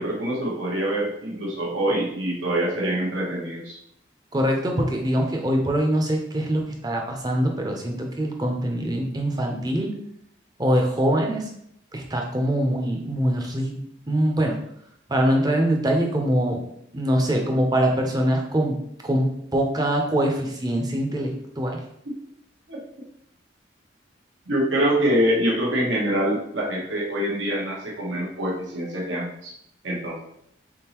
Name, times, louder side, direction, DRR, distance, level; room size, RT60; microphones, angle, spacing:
voice 1, 0.0-3.8 22.7-22.8 24.5-29.5 29.8-30.2, right 1 dB, 85° right, -4 dB, 1.1 m, -25 dB
voice 2, 4.3-9.9 10.6-11.5 11.9-13.8 14.1-14.6 15.1-16.6 16.9-18.8 19.0-21.8, right 1 dB, 20° right, 2 dB, 0.6 m, -23 dB
4.0 x 3.6 x 2.9 m, 0.72 s
head